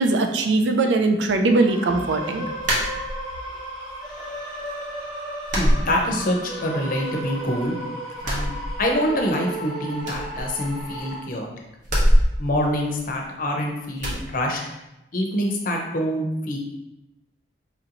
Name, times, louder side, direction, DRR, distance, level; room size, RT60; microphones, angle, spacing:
voice 1, 0.0-2.4, right 2 dB, 85° right, 5 dB, 0.4 m, -20 dB
sound 1, 1.6-11.2, right 1 dB, ahead, 1.2 m, -34 dB
sound 2, 2.6-3.5 3.9-4.6 4.9-5.0 5.5-6.6 6.9-7.7 8.1-9.3 9.5-9.6 10.0-11.1 11.8-13.5 14.0-14.3, equal, 45° right, 0.8 m, -24 dB
voice 2, 5.5-7.7 8.2-8.5 8.8-11.5 12.4-14.6 15.1-16.6, equal, 50° left, 1 dB, 0.6 m, -25 dB
4.3 x 2.6 x 2.8 m, 0.91 s
head